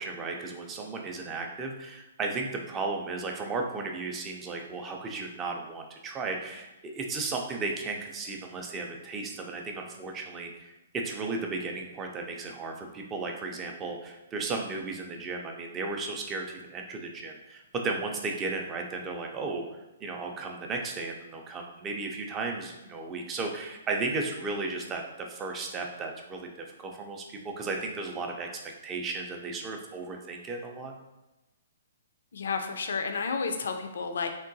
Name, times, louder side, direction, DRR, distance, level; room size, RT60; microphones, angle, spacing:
voice 1, 0.0-30.9, right 3 dB, 20° right, 2 dB, 0.3 m, -35 dB
voice 2, 32.3-34.3, left 5 dB, 75° left, 6 dB, 0.3 m, -31 dB
3.6 x 2.3 x 2.6 m, 1.0 s
hypercardioid pair, 155°, 0 cm